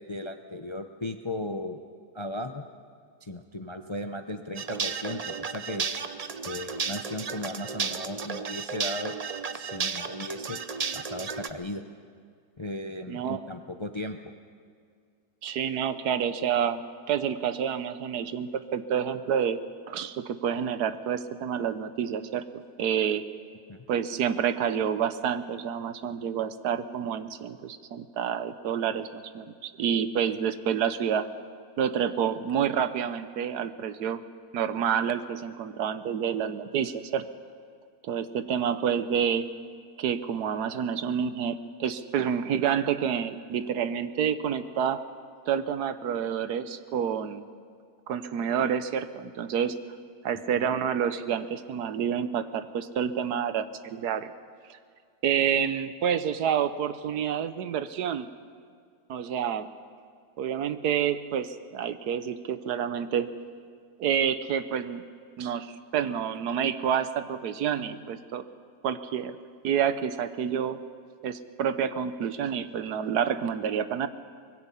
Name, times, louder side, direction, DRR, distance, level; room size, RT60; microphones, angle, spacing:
voice 1, 0.0-1.8 2.1-2.6 3.2-5.9 6.4-9.2 9.5-10.6 10.9-11.8 12.6-14.2 23.7-23.9 50.6-50.7, left 1 dB, 35° left, 6 dB, 0.5 m, -36 dB
sound 1, 4.5-11.5, right 5 dB, 45° right, 0.5 m, -33 dB
voice 2, 13.1-13.4 15.4-19.6 19.9-22.4 22.8-23.2 23.9-31.3 31.8-34.2 34.5-37.3 38.0-39.5 40.0-45.0 45.5-47.4 48.1-49.8 50.2-54.3 54.7-54.8 55.2-58.3 59.1-59.7 60.4-63.3 64.0-65.0 65.4-68.5 68.8-69.4 69.6-70.8 71.2-74.1, right 8 dB, 85° right, 12 dB, 1.4 m, -28 dB
24.5 x 20.5 x 5.6 m, 2.1 s
omnidirectional pair, 1.6 m